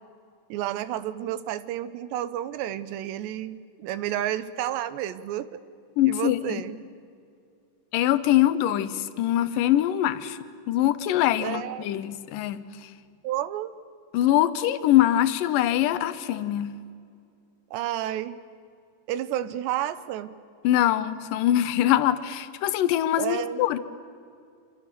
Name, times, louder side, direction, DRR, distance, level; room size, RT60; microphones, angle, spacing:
voice 1, 0.5-5.6 6.0-6.8 11.4-11.9 13.2-13.7 17.7-18.4 19.1-20.3 23.2-23.6, right 12 dB, 85° right, 14 dB, 3.1 m, -31 dB
voice 2, 6.0-6.6 7.9-10.4 10.7-12.9 14.1-16.7 20.6-23.8, left 13 dB, 70° left, 13 dB, 2.2 m, -23 dB
28.0 x 26.5 x 6.8 m, 2.4 s
omnidirectional pair, 4.9 m